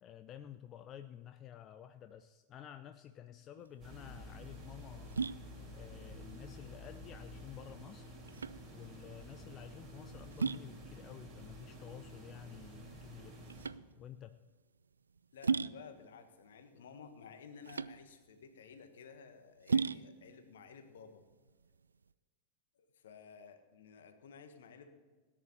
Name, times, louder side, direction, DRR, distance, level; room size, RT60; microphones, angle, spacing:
voice 1, 0.0-5.4 5.7-8.2 8.7-13.4 14.0-14.4, left 10 dB, 30° left, 10 dB, 0.5 m, -52 dB
sound 1, 3.6-22.1, right 5 dB, 75° right, 0.3 m, -40 dB
sound 2, 3.8-13.7, equal, 25° right, 4.4 m, -51 dB
voice 2, 15.3-21.3 22.7-24.9, left 6 dB, 60° left, 8 dB, 1.4 m, -54 dB
17.5 x 10.0 x 4.3 m, 1.4 s
figure-of-eight pair, 90°, 0 cm